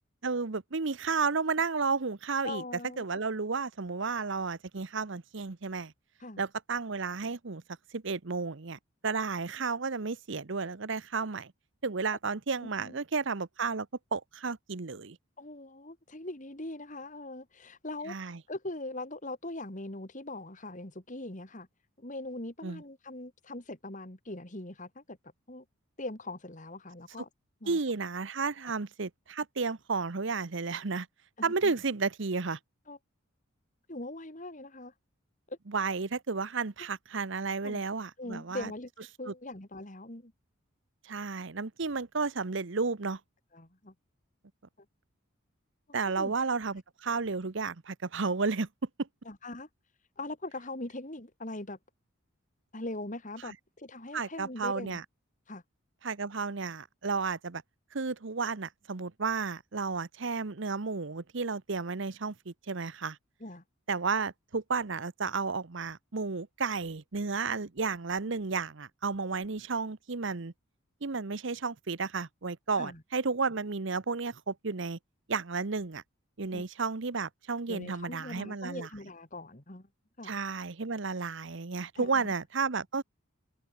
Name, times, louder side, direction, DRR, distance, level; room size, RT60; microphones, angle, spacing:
voice 1, 0.2-2.6 3.0-5.9 6.4-7.6 7.9-11.5 11.8-15.2 18.1-18.4 22.6-22.8 27.7-31.1 31.4-32.6 35.7-38.7 39.3-39.4 41.0-43.2 45.9-48.7 49.0-49.1 53.4-53.5 54.1-55.0 56.0-57.6 57.9-63.2 63.9-70.5 71.0-75.0 75.3-76.0 76.4-78.9 80.2-83.0, right 4 dB, 60° right, 0.9 m, -32 dB
voice 2, 2.4-3.0 6.2-6.4 12.6-13.0 15.4-21.7 22.0-25.2 25.5-25.6 26.0-27.3 27.6-27.8 31.4-31.7 32.9-33.0 33.9-34.9 35.5-35.6 36.8-36.9 37.6-37.8 38.2-38.9 39.2-40.3 43.5-43.9 46.2-46.3 49.2-49.7 50.2-51.8 52.7-55.0 55.5-55.6 63.4-63.6 72.8-73.0 76.5-76.6 77.7-79.9 80.2-80.3 81.9-82.3, left 2 dB, 35° left, 2.8 m, -41 dB
head